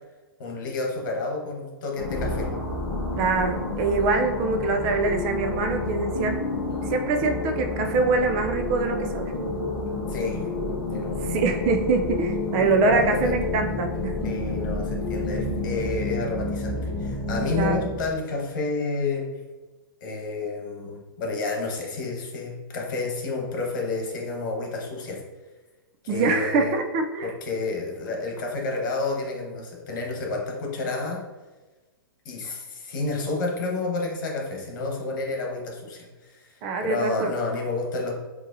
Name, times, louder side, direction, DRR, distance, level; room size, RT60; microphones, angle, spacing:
voice 1, 0.4-2.5 10.1-10.5 10.9-11.4 12.9-13.4 14.2-19.3 20.0-25.2 26.0-26.8 27.2-31.2 32.2-38.1, left 3 dB, 60° left, 0 dB, 1.2 m, -30 dB
sound 1, 2.0-18.2, left 1 dB, ahead, 1.0 m, -31 dB
sound 2, 2.1-16.3, left 5 dB, 80° left, 0.6 m, -34 dB
voice 2, 3.2-6.4 6.8-9.3 11.3-14.1 17.5-17.8 26.1-27.3 36.6-37.3, right 3 dB, 35° right, 5 dB, 0.4 m, -24 dB
6.3 x 2.8 x 2.6 m, 1.2 s
hypercardioid pair, 135°, 12 cm